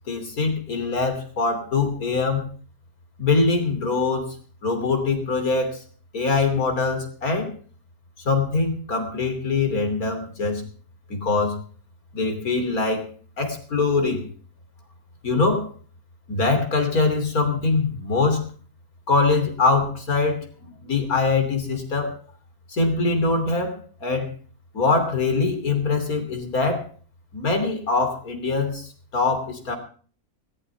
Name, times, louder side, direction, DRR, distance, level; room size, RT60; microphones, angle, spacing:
voice 1, 0.1-2.5 3.2-4.4 4.6-5.8 6.1-7.5 8.3-10.6 11.1-11.6 12.1-13.1 13.4-14.3 15.2-15.7 16.3-18.5 19.1-22.1 22.7-24.3 24.7-26.9 27.3-29.8, left 3 dB, 75° left, 6 dB, 3.7 m, -23 dB
20.5 x 15.5 x 3.5 m, 0.43 s
omnidirectional pair, 1.6 m